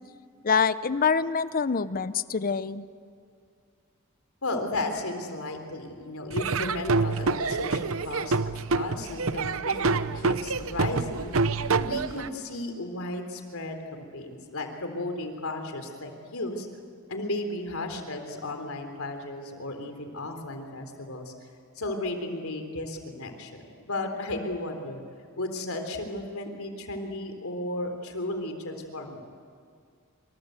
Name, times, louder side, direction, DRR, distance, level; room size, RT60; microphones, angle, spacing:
voice 1, 0.4-2.8, left 5 dB, 45° left, 15 dB, 0.8 m, -25 dB
voice 2, 4.4-8.4 8.7-11.3 11.7-16.7 17.1-21.3 21.8-25.0 25.4-29.2, left 2 dB, 85° left, 5 dB, 3.6 m, -34 dB
Laughter / Drum, 6.3-12.3, right 4 dB, 70° right, 0.8 m, -27 dB
27.0 x 26.5 x 8.2 m, 2.2 s
head